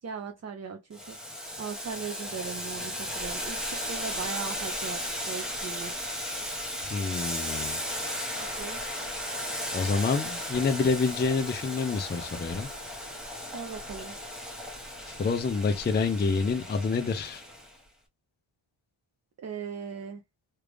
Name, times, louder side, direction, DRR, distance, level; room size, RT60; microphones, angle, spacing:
voice 1, 0.0-5.9 8.4-8.8 13.5-14.2 19.4-20.2, right 6 dB, 35° right, 0.5 m, -39 dB
Boiling, 0.9-17.7, equal, ahead, 0.9 m, -35 dB
voice 2, 6.9-7.8 9.7-12.7 15.1-17.4, left 4 dB, 25° left, 0.4 m, -27 dB
3.3 x 2.4 x 3.3 m
wide cardioid pair, 135°, 49 cm